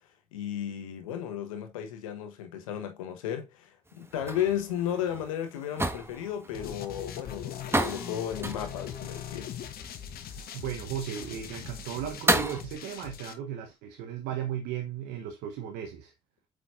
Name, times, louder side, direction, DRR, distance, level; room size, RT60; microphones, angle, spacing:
voice 1, 0.3-9.5, left 10 dB, 90° left, 1.1 m, -34 dB
sound 1, 3.9-12.6, right 2 dB, 15° right, 1.4 m, -33 dB
sound 2, 6.5-13.3, left 9 dB, 65° left, 1.2 m, -40 dB
voice 2, 10.4-16.1, right 9 dB, 75° right, 1.0 m, -36 dB
8.2 x 5.0 x 2.5 m
hypercardioid pair, 45°, 17 cm